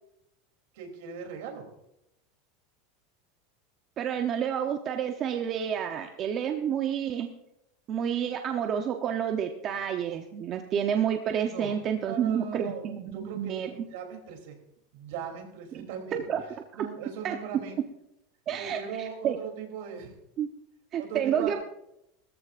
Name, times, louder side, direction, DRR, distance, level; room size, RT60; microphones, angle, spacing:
voice 1, 0.7-1.7 11.4-14.6 14.9-16.3 16.7-17.8 18.6-20.1 21.0-21.6, right 7 dB, 65° right, 3 dB, 3.0 m, -39 dB
voice 2, 4.0-7.3 7.9-13.9 15.7-16.4 16.7-16.9 17.2-17.4 18.5-19.4 20.4-20.5 20.9-21.6, right 8 dB, 30° right, 5 dB, 0.7 m, -29 dB
19.5 x 14.0 x 2.5 m, 0.84 s
supercardioid pair, 160°, 0 cm